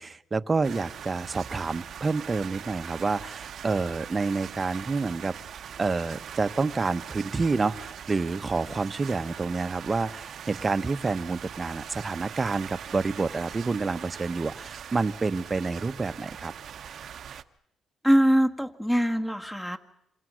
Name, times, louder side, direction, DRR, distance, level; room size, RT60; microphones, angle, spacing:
voice 1, 0.0-5.3 5.8-16.5, right 4 dB, 30° right, 12 dB, 1.1 m, -28 dB
sound 1, 0.6-17.4, right 8 dB, 60° right, 1.0 m, -41 dB
voice 2, 18.0-19.8, equal, 5° left, 6 dB, 1.8 m, -22 dB
27.5 x 26.0 x 6.4 m, 0.80 s
cardioid pair, 90°, 0 cm